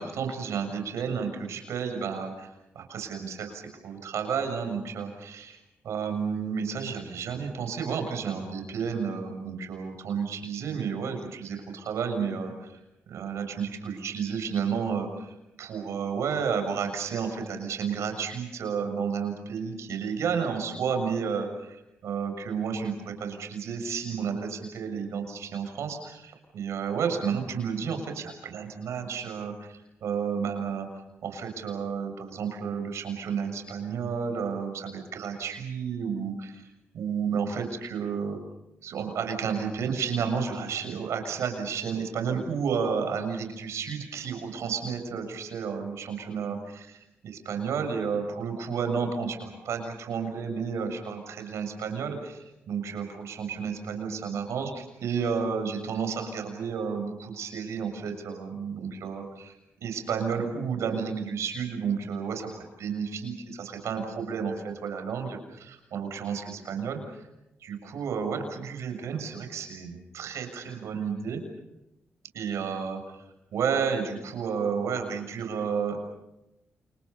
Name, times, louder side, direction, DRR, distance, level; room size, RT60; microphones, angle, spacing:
voice 1, 0.0-2.5 2.7-5.6 5.8-12.8 13.1-30.9 31.2-36.6 36.9-38.4 38.8-47.0 47.2-67.2 67.6-71.4 72.3-73.0 73.5-76.0, right 6 dB, 85° right, 5 dB, 7.0 m, -31 dB
29.5 x 29.0 x 5.6 m, 0.90 s
cardioid pair, 60°, 5 cm